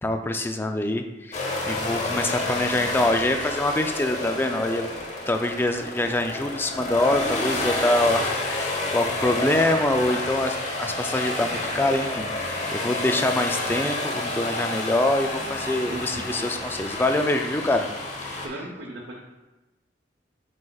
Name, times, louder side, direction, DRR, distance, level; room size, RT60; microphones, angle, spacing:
voice 1, 0.0-4.9 5.3-17.9 18.2-18.4, left 1 dB, 10° left, 6 dB, 0.3 m, -25 dB
sound 1, 1.3-18.5, left 2 dB, 40° left, 0.9 m, -29 dB
voice 2, 15.9-16.3 18.4-19.2, right 1 dB, 75° right, -2 dB, 0.9 m, -36 dB
8.5 x 4.8 x 2.3 m, 1.1 s
head